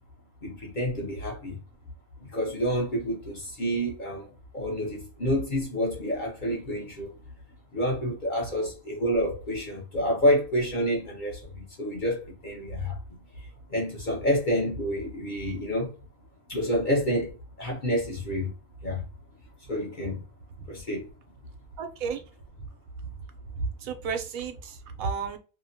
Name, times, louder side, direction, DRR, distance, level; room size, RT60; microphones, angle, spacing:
voice 1, 0.4-1.6 2.2-7.1 7.7-13.0 13.7-15.9 16.5-17.3 17.6-18.5 18.8-19.0 19.7-20.2 20.7-21.1, equal, 45° left, 0.7 m, -28 dB
voice 2, 21.8-22.2 23.6-25.4, right 5 dB, 80° right, 1.0 m, -33 dB
2.7 x 2.1 x 2.6 m
omnidirectional pair, 1.4 m